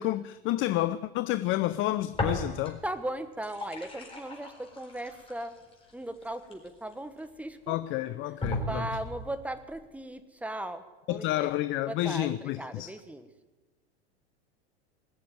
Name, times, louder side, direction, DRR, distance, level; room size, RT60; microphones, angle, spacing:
voice 1, 0.0-2.8 7.7-8.9 11.1-12.9, left 15 dB, 40° left, 0.5 m, -30 dB
sound 1, 2.1-2.9 3.2-7.2 7.8-7.9 8.4-9.3, left 2 dB, 15° left, 4.2 m, -36 dB
voice 2, 2.8-5.6 5.9-7.8 8.3-10.8 11.1-11.5 11.9-13.3, right 1 dB, 5° right, 1.1 m, -38 dB
20.0 x 6.9 x 9.3 m
hypercardioid pair, 100°, 32 cm